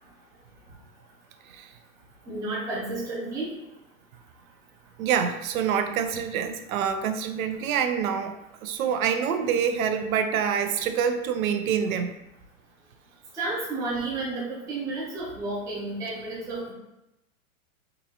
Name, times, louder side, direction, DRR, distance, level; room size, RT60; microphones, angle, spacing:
voice 1, 2.3-3.5 13.3-16.7, right 2 dB, 10° right, -6 dB, 0.4 m, -31 dB
voice 2, 5.0-8.3 8.6-12.1, right 7 dB, 80° right, 8 dB, 0.5 m, -26 dB
3.8 x 2.3 x 2.8 m, 0.89 s
hypercardioid pair, 145°, 42 cm